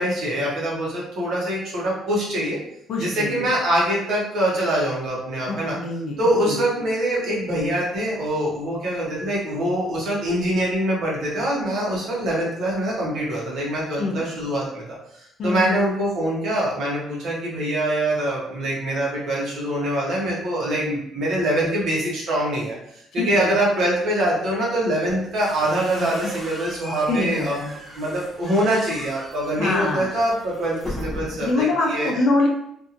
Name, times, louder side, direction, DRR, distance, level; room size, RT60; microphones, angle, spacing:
voice 1, 0.0-2.6 3.0-5.7 6.2-14.8 15.1-22.7 23.1-27.6 27.9-32.1, right 1 dB, 50° right, -4 dB, 1.0 m, -24 dB
voice 2, 2.9-3.5 5.5-6.2 6.4-6.6 14.0-14.2 15.4-15.8 23.2-23.5 26.0-26.3 27.1-27.7 29.6-30.1 31.4-32.5, left 2 dB, 50° left, -1 dB, 0.6 m, -24 dB
sound 1, 25.1-31.6, left 1 dB, ahead, 0.6 m, -38 dB
2.8 x 2.5 x 2.5 m, 0.74 s
cardioid pair, 175°, 0 cm